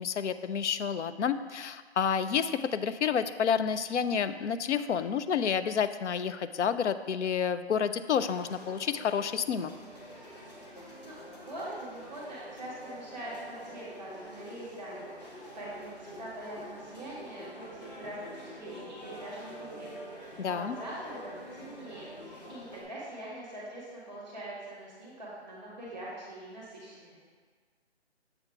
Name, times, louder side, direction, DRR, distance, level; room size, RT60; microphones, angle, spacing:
voice 1, 0.0-9.7 20.4-20.7, left 7 dB, 85° left, 12 dB, 0.5 m, -29 dB
sound 1, 8.1-22.8, equal, 40° left, 1.2 m, -46 dB
voice 2, 11.0-27.2, right 1 dB, 5° left, -7 dB, 1.1 m, -43 dB
7.1 x 3.4 x 5.8 m, 1.5 s
hypercardioid pair, 180°, 34 cm